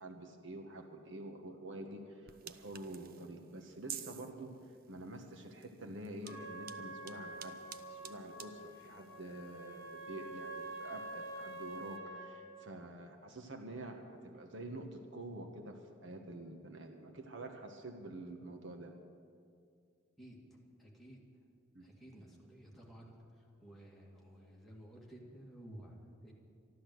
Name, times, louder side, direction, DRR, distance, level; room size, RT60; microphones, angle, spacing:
voice 1, 0.0-4.6 4.9-7.6 7.9-18.9 21.7-21.8, right 2 dB, 65° right, 3 dB, 1.3 m, -47 dB
sound 1, 2.3-12.0, right 9 dB, 45° right, 0.6 m, -54 dB
Trumpet, 6.2-12.5, right 1 dB, 20° left, 4.2 m, -47 dB
voice 2, 20.2-21.2 21.8-26.3, right 1 dB, ahead, -4 dB, 2.2 m, -54 dB
13.0 x 12.0 x 7.9 m, 2.3 s
head